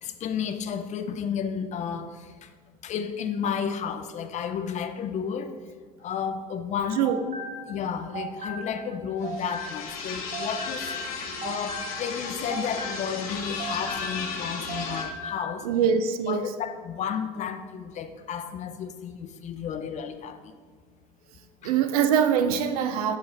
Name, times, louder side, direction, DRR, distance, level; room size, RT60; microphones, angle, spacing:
voice 1, 0.0-2.5 2.8-5.5 6.0-7.1 7.7-10.8 11.1-15.7 16.3-20.4 21.6-21.7, left 7 dB, 40° left, 9 dB, 0.5 m, -32 dB
sound 1, 6.8-10.0 10.3-14.4 14.7-15.5, right 1 dB, 40° right, 1.0 m, -37 dB
sound 2, 9.2-15.1, left 5 dB, 75° left, 0.7 m, -35 dB
voice 2, 15.6-16.5 21.6-23.2, right 8 dB, 80° right, 9 dB, 0.4 m, -23 dB
6.5 x 4.5 x 3.4 m, 1.5 s
hypercardioid pair, 70°, 19 cm